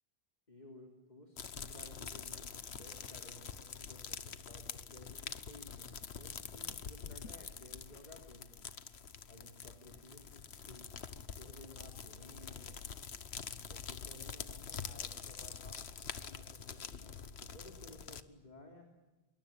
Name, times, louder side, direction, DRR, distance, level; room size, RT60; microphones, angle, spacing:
voice 1, 0.5-9.0 9.3-12.8 13.7-18.9, left 1 dB, 45° left, 1 dB, 3.5 m, -56 dB
sound 1, 1.4-18.2, left 6 dB, 80° left, 1.4 m, -46 dB
26.5 x 23.0 x 9.0 m, 1.1 s
omnidirectional pair, 1.1 m